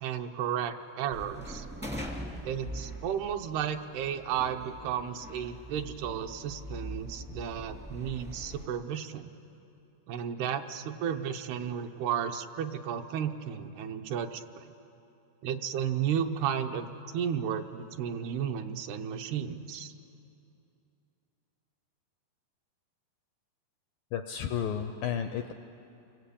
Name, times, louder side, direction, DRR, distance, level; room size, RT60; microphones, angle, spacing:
voice 1, 0.0-1.7 2.4-9.3 10.1-14.4 15.4-19.9, right 8 dB, 75° right, 6 dB, 2.9 m, -33 dB
sound 1, 1.1-8.7, equal, 10° right, 0.6 m, -42 dB
voice 2, 24.1-25.5, left 8 dB, 80° left, 7 dB, 2.0 m, -32 dB
29.0 x 23.0 x 8.6 m, 2.7 s
omnidirectional pair, 4.8 m